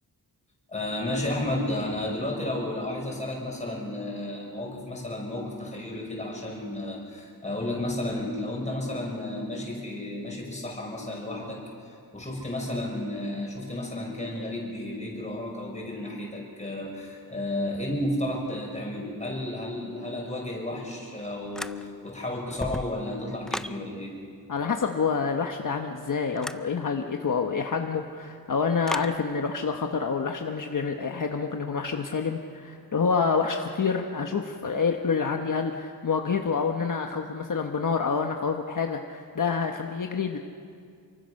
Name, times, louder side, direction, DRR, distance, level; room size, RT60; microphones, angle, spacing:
voice 1, 0.7-24.2, left 1 dB, 20° left, -2 dB, 6.4 m, -32 dB
House Door Lock And Close Interior, 21.5-22.1 22.5-23.8 26.4-26.7 28.9-29.2, equal, ahead, 0.5 m, -35 dB
voice 2, 24.5-40.4, left 5 dB, 55° left, 3 dB, 1.3 m, -27 dB
28.0 x 24.0 x 6.6 m, 2.3 s
wide cardioid pair, 125°, 37 cm